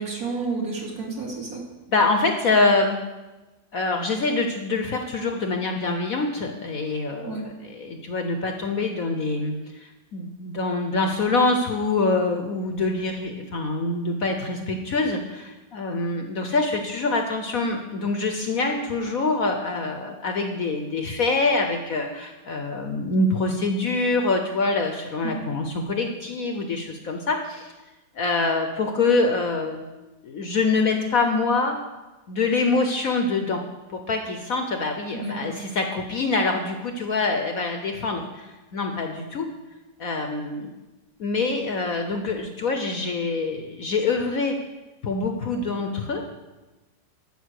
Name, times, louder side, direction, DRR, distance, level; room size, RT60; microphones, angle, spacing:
voice 1, 0.0-1.6 7.2-7.4 25.2-25.4 35.1-35.5, right 4 dB, 50° right, -2 dB, 2.8 m, -30 dB
voice 2, 1.9-3.0 3.7-27.7 28.1-29.8 30.2-31.8 32.3-33.6 33.9-39.5 40.0-40.7 41.2-44.6 45.0-46.2, left 3 dB, 55° left, 5 dB, 1.1 m, -25 dB
13.5 x 6.0 x 6.5 m, 1.1 s
omnidirectional pair, 2.0 m